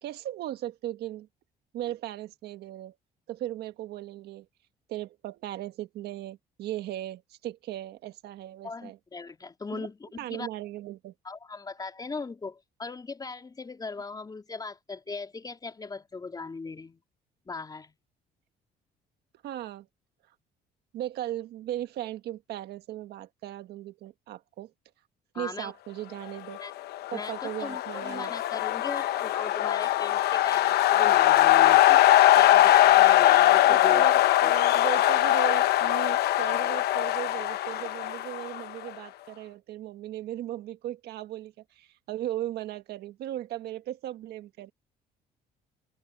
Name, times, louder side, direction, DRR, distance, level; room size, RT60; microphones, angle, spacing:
voice 1, 0.0-1.3 1.7-2.9 3.3-4.5 4.9-9.0 9.7-9.9 10.2-11.1 19.4-19.9 20.9-24.7 25.3-26.6 27.1-28.3 33.3-44.7, right 13 dB, 75° right, 1.5 m, -37 dB
voice 2, 8.6-10.5 11.2-17.0 17.5-18.0 25.3-25.7 26.6-26.7 27.1-34.5, left 4 dB, 25° left, 4.0 m, -38 dB
sound 1, 26.9-38.9, left 14 dB, 75° left, 1.0 m, -21 dB
cardioid pair, 110°, 17 cm